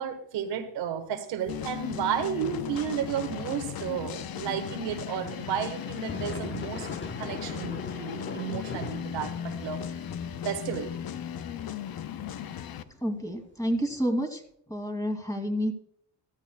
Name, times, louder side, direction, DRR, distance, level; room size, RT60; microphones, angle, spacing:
voice 1, 0.0-6.9 7.2-9.8 10.4-10.9, right 8 dB, 90° right, 5 dB, 1.4 m, -32 dB
sound 1, 1.5-12.8, left 9 dB, 60° left, 0.8 m, -37 dB
sound 2, 1.5-4.6 5.4-14.0, left 3 dB, 25° left, 1.0 m, -43 dB
voice 2, 13.0-14.4 14.7-15.7, equal, 10° left, 4 dB, 2.4 m, -29 dB
15.0 x 12.5 x 2.2 m, 0.66 s
cardioid pair, 90°, 41 cm